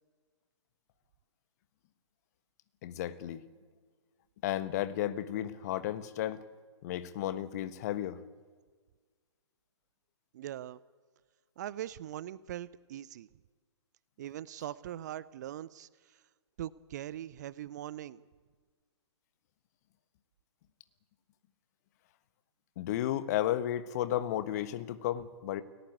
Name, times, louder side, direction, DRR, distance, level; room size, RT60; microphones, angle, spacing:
voice 1, 2.8-3.4 4.4-6.4 6.8-8.2 22.8-25.6, left 12 dB, 35° left, 1.4 m, -33 dB
voice 2, 10.3-10.8 11.6-13.3 14.2-16.2 16.6-18.2, right 12 dB, 35° right, 0.7 m, -41 dB
29.5 x 17.5 x 8.4 m
figure-of-eight pair, 125°, 15 cm